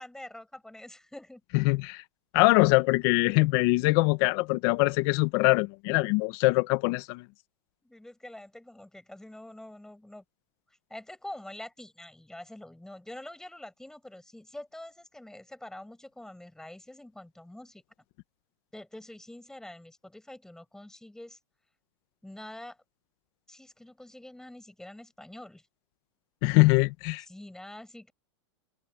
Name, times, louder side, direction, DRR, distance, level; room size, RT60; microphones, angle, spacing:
voice 1, 0.0-1.4 7.8-10.2 10.9-17.8 18.7-21.4 22.2-22.8 23.5-25.6 27.3-28.1, left 1 dB, 5° left, 6.8 m, -46 dB
voice 2, 1.5-2.0 2.3-7.2 26.4-27.2, left 23 dB, 50° left, 1.5 m, -23 dB
supercardioid pair, 140°, 16 cm